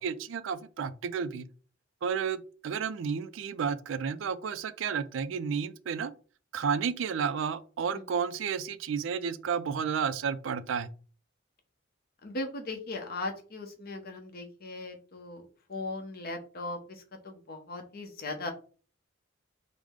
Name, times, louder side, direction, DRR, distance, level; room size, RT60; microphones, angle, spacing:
voice 1, 0.0-1.5 2.0-6.1 6.5-10.9, right 6 dB, 75° right, 0.4 m, -32 dB
voice 2, 12.2-18.5, left 2 dB, 55° left, 0.8 m, -38 dB
4.8 x 2.1 x 3.5 m
head